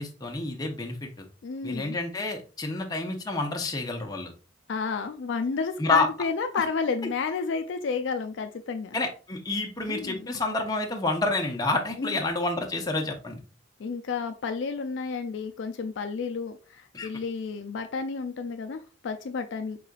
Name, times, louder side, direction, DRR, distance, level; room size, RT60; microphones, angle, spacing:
voice 1, 0.0-1.2 1.6-4.3 5.8-6.1 6.5-6.6 8.9-13.4 16.9-17.1, left 2 dB, 20° left, 2 dB, 0.6 m, -29 dB
voice 2, 1.4-2.0 4.7-9.0 9.9-10.3 12.0-12.2 13.8-19.8, left 5 dB, 60° left, 7 dB, 0.4 m, -31 dB
4.9 x 3.7 x 2.3 m, 0.35 s
head